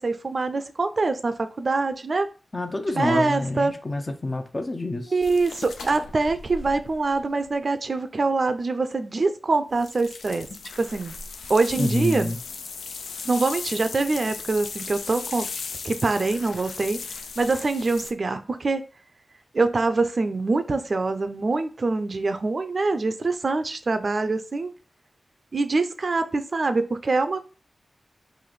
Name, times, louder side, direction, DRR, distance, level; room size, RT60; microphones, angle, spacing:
voice 1, 0.0-2.3 3.0-3.7 5.1-10.5 10.8-11.1 11.5-12.3 13.2-15.5 15.8-17.0 17.4-18.8 19.5-24.7 25.5-27.4, right 3 dB, 60° right, 0.4 m, -24 dB
voice 2, 2.5-5.1 11.8-12.4, left 2 dB, 40° left, 0.6 m, -27 dB
sound 1, 5.2-7.5 9.7-18.1, left 5 dB, 90° left, 0.3 m, -37 dB
3.2 x 2.5 x 3.9 m
cardioid pair, 40°, 0 cm